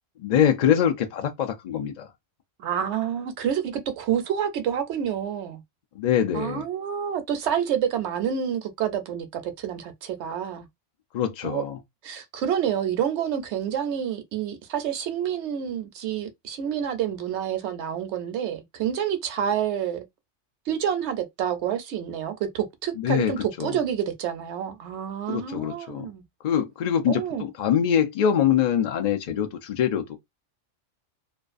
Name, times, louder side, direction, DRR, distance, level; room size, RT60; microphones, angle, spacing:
voice 1, 0.2-2.1 6.0-6.6 11.1-11.8 23.0-23.3 23.6-23.8 25.3-26.1 26.4-30.2, left 9 dB, 75° left, 0.4 m, -24 dB
voice 2, 2.6-5.6 6.3-10.7 11.4-11.6 12.0-20.0 20.7-26.2 27.1-27.5, right 9 dB, 70° right, 0.8 m, -28 dB
2.4 x 2.3 x 2.4 m
omnidirectional pair, 1.3 m